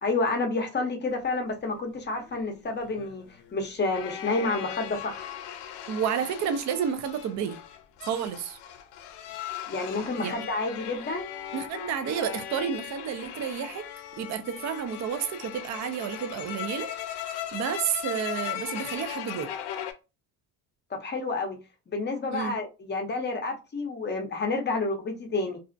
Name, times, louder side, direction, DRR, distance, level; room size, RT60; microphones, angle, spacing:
voice 1, 0.0-3.2 3.5-5.3 9.7-11.2 21.0-21.6 21.9-25.6, left 3 dB, 25° left, 0.6 m, -29 dB
sound 1, 2.2-19.9, left 11 dB, 75° left, 0.5 m, -38 dB
voice 2, 5.9-7.6 8.0-8.6 10.2-10.3 11.5-13.8 14.2-16.9 17.2-19.5 22.3-22.5, right 8 dB, 45° right, 0.4 m, -31 dB
2.4 x 2.0 x 2.5 m
cardioid pair, 95°, 41 cm